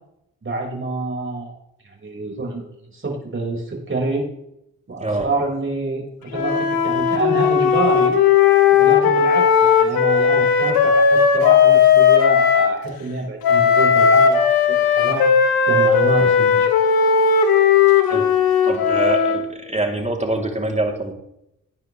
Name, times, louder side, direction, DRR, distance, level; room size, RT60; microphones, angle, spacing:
voice 1, 0.4-1.5 1.8-4.3 4.9-8.2 8.8-15.3 15.7-16.7, right 2 dB, 35° right, -1 dB, 5.3 m, -27 dB
Wind instrument woodwind instrument, 6.3-12.7 13.4-19.5, left 7 dB, 85° left, 1.7 m, -16 dB
voice 2, 18.6-21.1, right 2 dB, 20° right, 2 dB, 3.2 m, -24 dB
18.5 x 9.7 x 3.3 m, 0.82 s
supercardioid pair, 50°, 35 cm